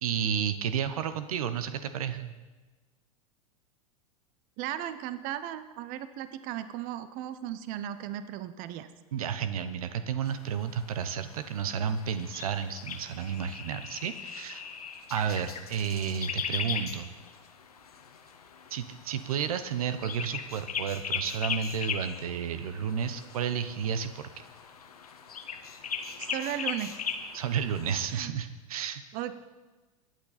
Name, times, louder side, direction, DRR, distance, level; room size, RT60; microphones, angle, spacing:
voice 1, 0.0-2.3 9.1-14.6 15.1-17.1 18.7-24.3 27.3-29.0, right 8 dB, 75° right, 11 dB, 0.9 m, -32 dB
voice 2, 4.6-8.9 26.2-27.0 28.1-28.3 29.1-29.4, right 11 dB, 50° right, 12 dB, 0.9 m, -36 dB
sound 1, 10.2-28.0, left 6 dB, 90° left, 1.4 m, -39 dB
22.0 x 9.2 x 4.2 m, 1.3 s
hypercardioid pair, 100°, 19 cm